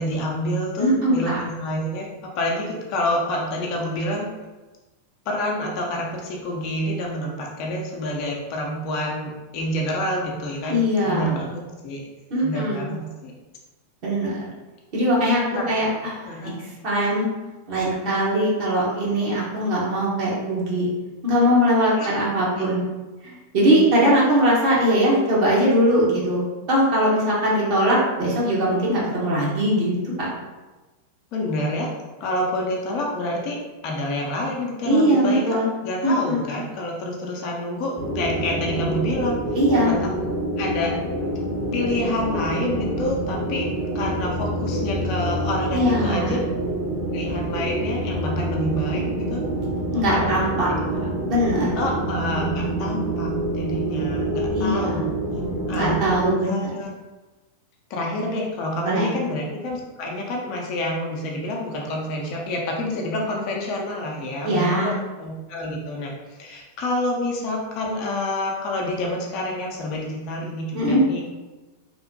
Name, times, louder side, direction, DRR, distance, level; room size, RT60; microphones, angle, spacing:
voice 1, 0.0-4.3 5.3-10.8 11.1-12.0 12.4-13.3 15.5-15.7 16.3-16.5 21.9-22.2 31.3-31.9 32.2-33.6 33.8-35.6 35.8-39.4 39.9-40.0 40.6-41.0 41.7-43.6 43.9-46.4 47.1-49.4 50.1-50.4 50.6-50.8 51.8-55.1 55.7-56.0 56.4-56.9 57.9-66.1 66.4-71.2, left 1 dB, 45° left, -1 dB, 0.5 m, -28 dB
voice 2, 0.8-1.4 10.7-11.3 12.3-12.8 14.0-14.4 14.9-16.1 16.4-16.5 16.8-17.3 17.7-20.9 21.2-22.8 23.2-30.3 34.8-35.7 36.0-36.4 39.5-39.9 45.7-46.4 49.9-50.7 51.3-51.8 54.5-55.1 55.7-56.7 58.8-59.1 64.4-64.9 70.7-71.0, equal, 45° right, -6 dB, 1.0 m, -21 dB
sound 1, 38.0-56.3, right 1 dB, 5° right, 0.8 m, -27 dB
3.0 x 2.1 x 2.7 m, 1.2 s
figure-of-eight pair, 90°, 0 cm